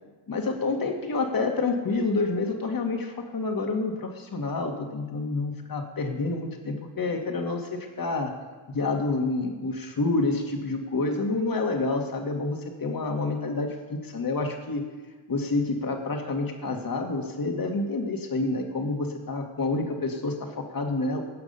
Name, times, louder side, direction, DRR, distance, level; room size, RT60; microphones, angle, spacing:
voice 1, 0.3-8.4 8.7-14.8 15.3-21.2, left 3 dB, 45° left, 3 dB, 2.1 m, -28 dB
17.5 x 6.0 x 5.6 m, 1.3 s
cardioid pair, 65°, 49 cm